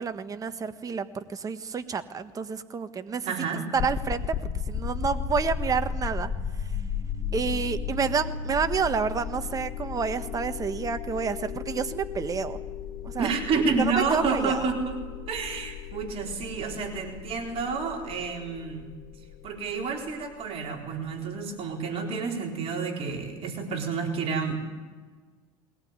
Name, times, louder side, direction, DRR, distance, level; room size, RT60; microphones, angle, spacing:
voice 1, 0.0-3.3 3.7-4.4 4.7-6.3 7.3-12.6 13.0-13.3 13.8-14.7, right 6 dB, 25° right, 10 dB, 1.5 m, -29 dB
voice 2, 3.2-3.7 13.2-15.0 15.3-18.9 19.4-24.6, right 5 dB, 50° right, 2 dB, 4.2 m, -29 dB
sound 1, 3.7-20.7, left 7 dB, 50° left, 3.0 m, -35 dB
21.5 x 19.0 x 9.7 m, 1.3 s
supercardioid pair, 110°, 13 cm